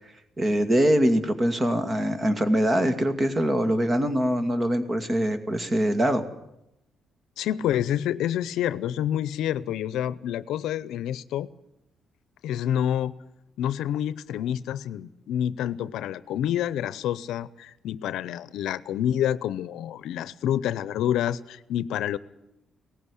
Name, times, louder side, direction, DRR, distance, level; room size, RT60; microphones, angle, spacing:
voice 1, 0.4-6.3, equal, 30° right, 10 dB, 2.2 m, -23 dB
voice 2, 7.4-11.5 12.4-13.1 13.6-22.2, left 10 dB, 85° left, 17 dB, 0.7 m, -28 dB
18.0 x 15.0 x 9.9 m, 0.86 s
cardioid pair, 90°, 0 cm